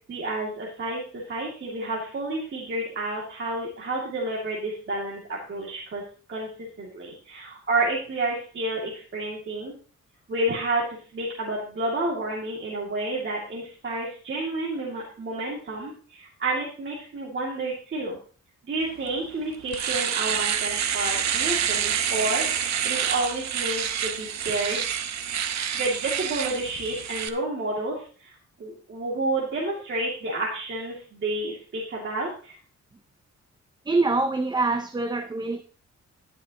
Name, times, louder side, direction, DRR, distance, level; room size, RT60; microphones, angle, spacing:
voice 1, 0.1-6.0 6.3-9.7 10.3-18.2 18.6-24.9 25.7-28.3 28.6-32.6, right 2 dB, 40° right, -4 dB, 2.4 m, -30 dB
Domestic sounds home sounds, 19.1-19.2 19.5-27.3, right 9 dB, 70° right, 1.0 m, -27 dB
voice 2, 33.9-35.6, right 3 dB, 15° right, 8 dB, 0.5 m, -25 dB
12.0 x 10.0 x 2.9 m, 0.40 s
wide cardioid pair, 145°, 30 cm